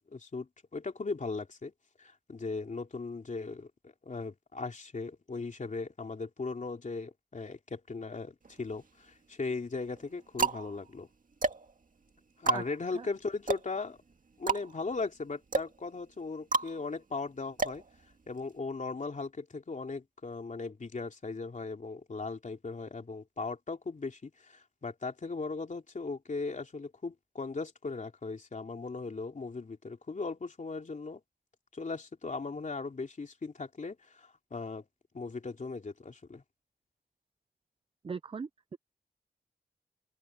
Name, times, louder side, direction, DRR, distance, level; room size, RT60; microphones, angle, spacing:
voice 1, 0.1-1.7 2.0-11.1 12.4-14.0 14.4-17.8 18.3-31.2 31.7-34.9 35.1-36.4, left 4 dB, 45° left, 3.2 m, -38 dB
sound 1, 8.4-9.2 9.8-18.6, right 4 dB, 55° right, 2.0 m, -34 dB
voice 2, 38.0-38.8, right 5 dB, 35° right, 0.4 m, -39 dB
wide cardioid pair, 125°, 17 cm